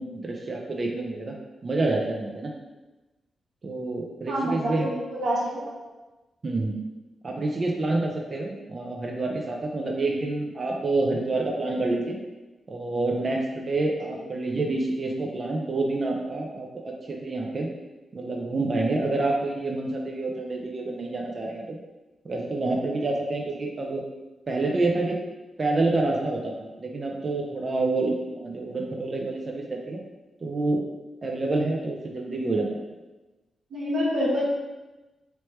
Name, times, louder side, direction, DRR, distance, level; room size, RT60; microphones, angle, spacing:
voice 1, 0.0-1.3 1.6-2.5 3.6-4.9 6.4-6.7 7.2-12.2 12.7-16.7 17.1-17.7 18.1-21.8 22.2-24.0 24.5-25.2 25.6-30.0 30.4-30.8 31.2-32.8, right 2 dB, 45° right, 0 dB, 0.5 m, -27 dB
voice 2, 4.3-5.7 14.1-14.2 33.7-34.4, equal, 75° right, -6 dB, 0.9 m, -27 dB
3.1 x 3.1 x 3.1 m, 1.1 s
cardioid pair, 75°, 0 cm